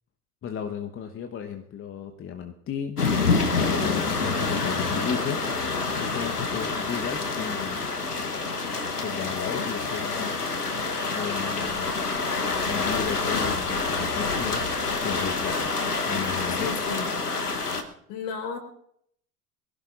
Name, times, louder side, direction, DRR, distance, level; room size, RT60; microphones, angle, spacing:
voice 1, 0.4-3.0 3.6-5.7 6.0-7.9 9.0-10.3 11.1-12.0 12.7-14.6 15.0-15.7 16.1-16.7, left 8 dB, 30° left, 5 dB, 1.1 m, -34 dB
sound 1, 3.0-17.8, left 4 dB, 85° left, 1.2 m, -27 dB
voice 2, 3.7-4.0 16.6-17.1 18.1-18.6, left 6 dB, 55° left, 5 dB, 4.1 m, -32 dB
23.5 x 16.5 x 2.5 m, 0.69 s
figure-of-eight pair, 70°, 45 cm